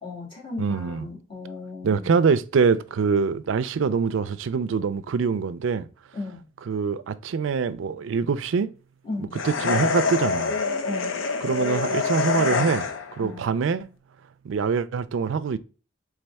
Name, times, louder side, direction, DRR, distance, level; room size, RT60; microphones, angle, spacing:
voice 1, 0.0-2.3 6.1-6.4 9.0-9.3 10.8-11.2 13.2-13.5, left 3 dB, 25° left, 2.0 m, -36 dB
voice 2, 0.6-1.1 1.8-5.9 6.7-8.7 9.4-10.5 11.4-12.9 13.2-13.9 14.4-15.6, right 5 dB, 70° right, 0.4 m, -24 dB
sound 1, 9.3-13.2, left 4 dB, 75° left, 0.6 m, -26 dB
4.2 x 3.5 x 3.4 m
head